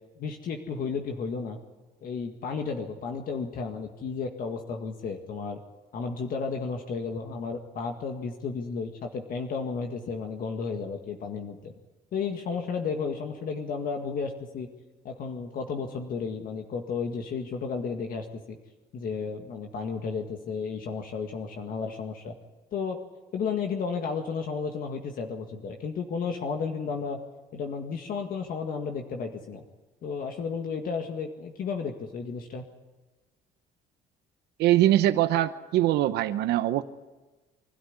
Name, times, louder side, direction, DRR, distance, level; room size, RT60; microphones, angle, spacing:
voice 1, 0.2-1.6 2.0-5.6 5.9-11.7 12.1-14.7 15.0-18.6 18.9-22.4 22.7-23.0 23.3-27.2 27.5-29.6 30.0-32.6, left 5 dB, 60° left, 3 dB, 1.9 m, -33 dB
voice 2, 34.6-36.8, right 13 dB, 80° right, 11 dB, 0.9 m, -22 dB
24.5 x 13.0 x 9.7 m, 1.2 s
cardioid pair, 110°, 17 cm